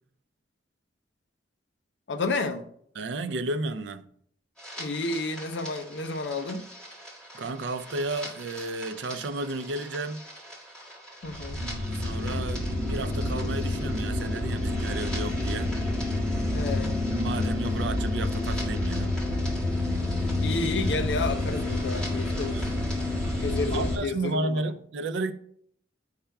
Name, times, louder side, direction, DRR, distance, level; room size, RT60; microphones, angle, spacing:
voice 1, 2.1-2.7 4.8-6.7 11.2-11.6 16.5-17.0 20.4-22.7 23.4-24.7, left 3 dB, 75° left, 0.6 m, -31 dB
voice 2, 3.0-4.1 7.3-10.2 11.6-15.7 17.0-19.2 22.5-22.7 23.7-25.3, right 2 dB, 80° right, 0.5 m, -33 dB
sound 1, 4.6-24.0, left 1 dB, 5° left, 1.9 m, -29 dB
10.0 x 5.7 x 2.3 m
head